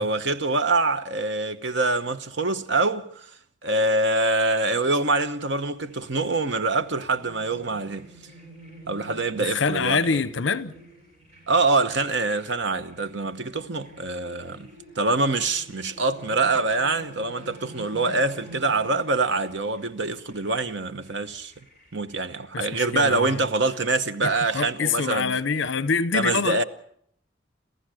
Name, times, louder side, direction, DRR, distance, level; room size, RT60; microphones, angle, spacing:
voice 1, 0.0-3.1 3.6-8.1 8.9-10.1 11.5-14.7 15.0-21.5 21.9-25.4 26.1-26.6, right 3 dB, 65° right, 1.0 m, -25 dB
sound 1, 5.8-22.4, right 1 dB, 35° right, 7.7 m, -48 dB
voice 2, 9.4-10.7 22.5-23.4 24.2-26.6, left 5 dB, 75° left, 0.8 m, -25 dB
28.0 x 14.5 x 6.3 m
head